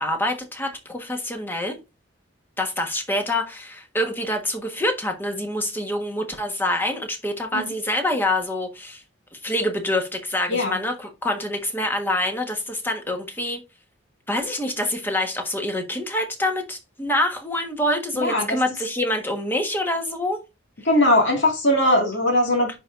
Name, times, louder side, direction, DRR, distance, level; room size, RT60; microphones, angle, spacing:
voice 1, 0.0-1.8 2.6-9.0 9.3-13.6 14.3-20.4, left 1 dB, 10° left, 1.3 m, -26 dB
voice 2, 18.1-18.6 20.9-22.7, left 1 dB, 65° left, 2.0 m, -20 dB
10.0 x 4.6 x 2.6 m
head